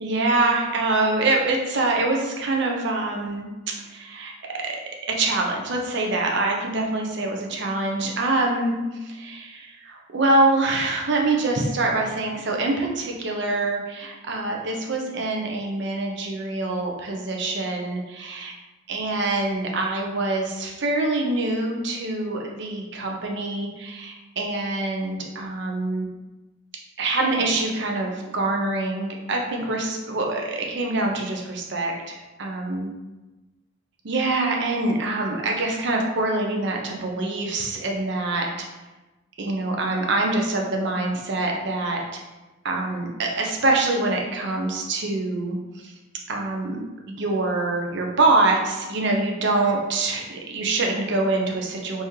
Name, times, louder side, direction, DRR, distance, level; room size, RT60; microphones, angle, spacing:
voice 1, 0.0-3.5 3.9-4.8 5.2-8.7 9.0-18.5 18.9-26.1 27.0-32.9 34.0-38.5 39.4-42.0 42.6-45.9 46.3-52.0, right 2 dB, 65° right, 1 dB, 0.6 m, -25 dB
3.1 x 2.8 x 3.6 m, 1.1 s
head